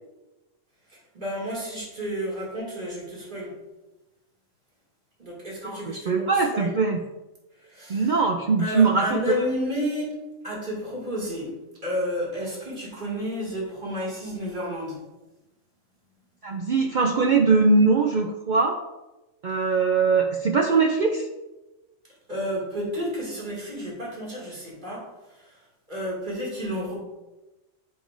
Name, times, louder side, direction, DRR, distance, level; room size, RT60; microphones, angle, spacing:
voice 1, 1.1-3.5 5.2-6.2 6.5-6.7 7.7-8.1 8.6-10.1 10.4-11.5 11.8-15.0 22.3-25.1 25.3-25.5 25.9-26.9, equal, 35° right, -5 dB, 2.2 m, -31 dB
voice 2, 5.6-7.0 7.9-9.2 16.4-18.8 19.4-21.3, right 4 dB, 70° right, 2 dB, 0.4 m, -21 dB
8.6 x 5.0 x 2.5 m, 1.0 s
omnidirectional pair, 1.4 m